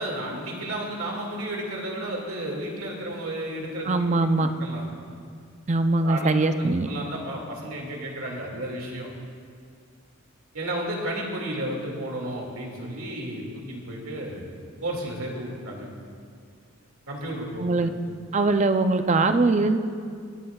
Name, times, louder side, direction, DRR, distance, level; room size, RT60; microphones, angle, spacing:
voice 1, 0.0-4.0 4.4-4.8 6.0-6.3 6.6-9.1 10.5-14.4 14.8-15.9 17.1-17.6, right 1 dB, 80° right, -1 dB, 2.3 m, -32 dB
voice 2, 3.8-4.5 5.7-6.9 17.6-17.9 18.3-19.8, right 3 dB, 35° right, 8 dB, 0.5 m, -21 dB
25.0 x 10.0 x 2.4 m, 2.3 s
head